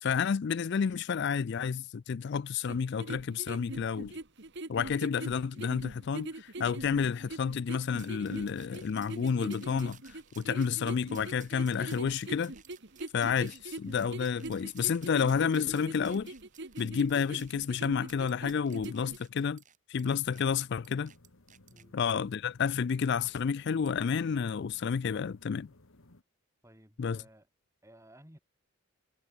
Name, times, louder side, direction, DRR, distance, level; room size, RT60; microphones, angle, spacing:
voice 1, 0.0-4.1 4.7-12.5 13.1-16.3 16.8-19.6 19.9-21.1 21.9-25.7 27.0-27.2, left 6 dB, 50° left, 0.4 m, -30 dB
sound 1, 2.7-19.2, right 2 dB, 55° right, 1.7 m, -43 dB
sound 2, 8.0-22.1 22.8-22.9 23.3-23.4 23.9-24.0, right 10 dB, 35° right, 3.7 m, -58 dB
sound 3, 20.1-26.2, left 1 dB, 70° left, 1.8 m, -60 dB
voice 2, 26.6-27.5 27.8-28.4, right 1 dB, 15° right, 3.3 m, -56 dB
head